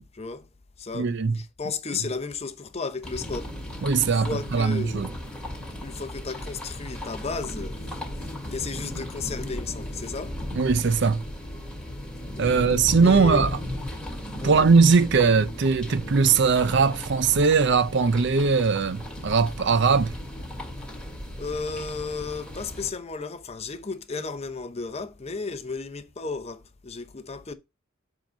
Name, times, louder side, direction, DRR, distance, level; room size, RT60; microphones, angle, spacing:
voice 1, 0.1-0.5 0.8-3.7 4.0-5.1 5.8-10.4 12.3-12.6 13.0-13.4 14.4-14.7 21.4-27.5, left 4 dB, 30° left, 0.7 m, -34 dB
voice 2, 0.9-1.3 3.8-5.1 10.6-11.2 12.4-13.6 14.4-20.1, right 5 dB, 50° right, 0.5 m, -20 dB
sound 1, 3.0-22.9, left 1 dB, 5° left, 2.2 m, -36 dB
7.6 x 3.8 x 5.1 m
head